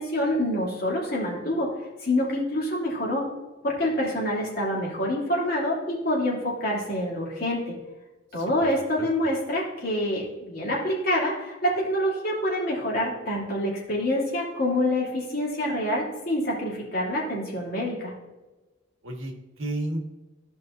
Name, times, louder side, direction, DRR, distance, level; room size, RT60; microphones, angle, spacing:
voice 1, 0.0-3.2 3.6-7.7 8.3-18.1, left 1 dB, 50° left, -5 dB, 2.9 m, -26 dB
voice 2, 8.4-8.7 9.0-9.1 19.0-20.0, right 1 dB, 90° right, 2 dB, 1.5 m, -32 dB
15.0 x 5.4 x 2.6 m, 1.1 s
head